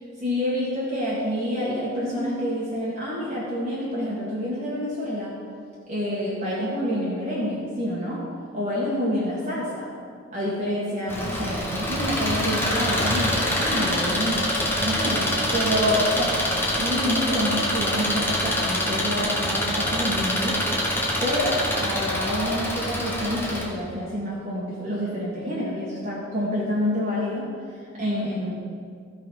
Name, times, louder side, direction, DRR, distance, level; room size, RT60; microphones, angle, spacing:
voice 1, 0.2-5.3 5.9-8.2 8.5-9.9 10.3-14.5 14.8-16.4 16.8-20.6 21.2-27.5 27.9-28.5, equal, 35° right, -7 dB, 1.7 m, -27 dB
Engine, 11.1-23.6, left 1 dB, 10° left, 1.3 m, -25 dB
14.0 x 5.4 x 5.6 m, 2.2 s
head